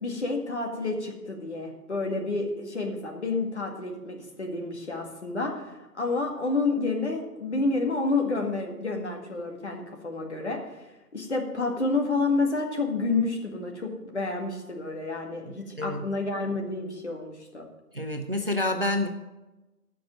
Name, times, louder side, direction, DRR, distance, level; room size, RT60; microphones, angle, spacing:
voice 1, 0.0-10.8 11.1-17.7, left 3 dB, 45° left, 1 dB, 2.0 m, -29 dB
voice 2, 15.5-16.1 17.9-19.1, left 1 dB, 35° right, 5 dB, 0.7 m, -28 dB
14.5 x 6.1 x 6.0 m, 1.0 s
figure-of-eight pair, 155°, 48 cm